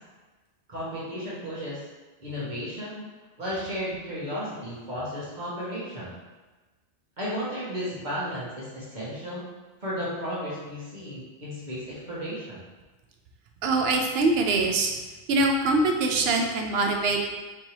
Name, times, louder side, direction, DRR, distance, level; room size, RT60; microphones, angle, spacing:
voice 1, 0.7-1.8 2.2-3.0 3.4-6.1 7.2-9.4 9.8-12.6, equal, 50° right, -8 dB, 1.4 m, -34 dB
voice 2, 13.6-14.9 15.3-17.4, right 3 dB, 80° right, 3 dB, 0.8 m, -23 dB
4.6 x 2.7 x 3.0 m, 1.2 s
omnidirectional pair, 1.0 m